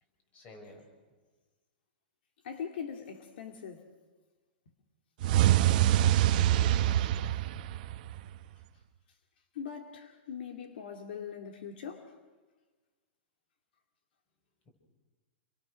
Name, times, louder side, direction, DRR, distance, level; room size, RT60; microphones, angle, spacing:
voice 1, 0.3-0.9 6.2-7.4, left 1 dB, 25° left, 6.5 m, -50 dB
voice 2, 2.4-3.9 9.5-12.1, left 7 dB, 70° left, 2.6 m, -41 dB
sound 1, 5.2-8.4, right 12 dB, 50° right, 1.0 m, -25 dB
28.0 x 22.5 x 6.5 m
supercardioid pair, 160°, 6 cm